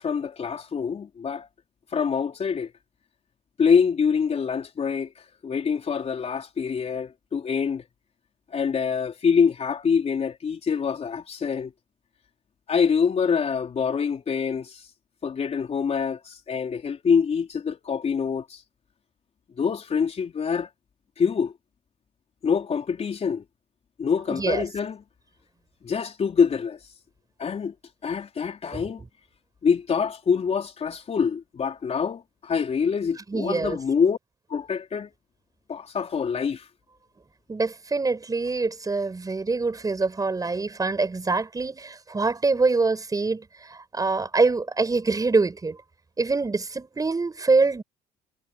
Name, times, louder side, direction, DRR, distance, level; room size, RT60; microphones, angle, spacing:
voice 1, 0.0-1.5 1.9-2.7 3.6-5.1 5.4-7.8 8.5-11.7 12.7-14.8 15.2-18.6 19.6-20.7 21.2-21.5 22.4-23.4 24.0-25.0 25.8-26.8 27.4-27.7 28.0-29.0 29.6-34.2 34.5-35.1 35.7-36.6, left 6 dB, 40° left, 4.3 m, -25 dB
voice 2, 24.3-24.6 28.7-28.8 33.3-33.8 37.5-45.8 46.2-47.8, right 3 dB, 20° right, 6.7 m, -25 dB
cardioid pair, 110°, 17 cm